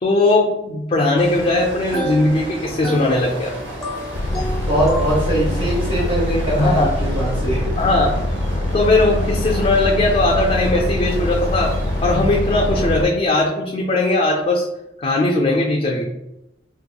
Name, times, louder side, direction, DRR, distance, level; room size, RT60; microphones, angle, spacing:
voice 1, 0.0-3.5 6.6-6.9 7.8-8.2 8.6-14.7 15.0-16.1, left 2 dB, 30° left, -1 dB, 0.3 m, -19 dB
sound 1, 1.2-13.1, right 1 dB, 70° right, 0.9 m, -33 dB
sound 2, 1.9-5.7, equal, ahead, 0.7 m, -31 dB
sound 3, 4.1-13.1, left 1 dB, 90° left, 0.5 m, -23 dB
voice 2, 4.3-7.7, right 1 dB, 40° right, -10 dB, 1.1 m, -22 dB
3.9 x 2.9 x 2.2 m, 0.90 s
head